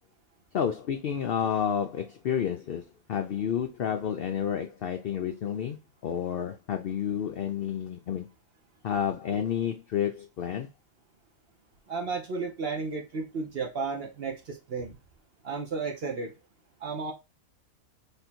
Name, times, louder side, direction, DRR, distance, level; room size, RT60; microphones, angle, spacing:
voice 1, 0.5-2.8 3.1-8.3 8.8-10.7, left 8 dB, 65° left, 0.6 m, -30 dB
voice 2, 11.9-15.0 15.4-16.3 16.8-17.1, right 4 dB, 50° right, 0.9 m, -33 dB
3.4 x 2.6 x 4.3 m
omnidirectional pair, 1.5 m